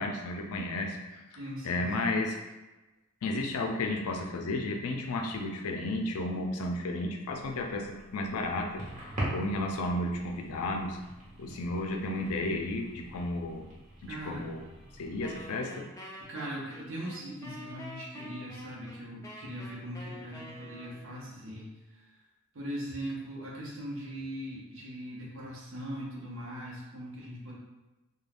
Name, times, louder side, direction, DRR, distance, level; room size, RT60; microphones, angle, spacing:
voice 1, 0.0-1.2 1.6-2.4 3.2-7.9 8.1-11.0 11.4-13.7 14.3-14.7 15.0-15.9, left 2 dB, 80° left, 3 dB, 0.4 m, -33 dB
voice 2, 1.4-2.1 14.1-14.5 16.3-22.2 22.5-27.6, equal, 60° right, -4 dB, 0.8 m, -40 dB
sound 1, 7.3-15.4, right 1 dB, 35° right, 0.8 m, -43 dB
Wind instrument woodwind instrument, 15.2-21.2, equal, 15° left, 0.4 m, -47 dB
2.4 x 2.2 x 3.3 m, 1.1 s
head